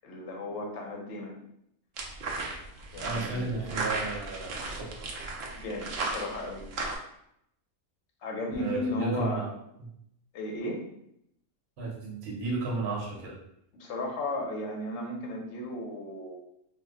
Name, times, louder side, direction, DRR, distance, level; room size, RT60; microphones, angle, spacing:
voice 1, 0.0-1.4 2.9-3.9 5.5-6.6 8.2-9.5 10.3-10.8 13.7-16.4, left 1 dB, 60° left, 1 dB, 0.9 m, -35 dB
sound 1, 2.0-7.0, right 3 dB, 70° right, 0.6 m, -35 dB
voice 2, 3.0-5.1 8.5-9.5 9.8-9.9 11.8-13.3, right 3 dB, 50° right, -3 dB, 0.9 m, -34 dB
2.6 x 2.1 x 3.6 m, 0.76 s
omnidirectional pair, 1.6 m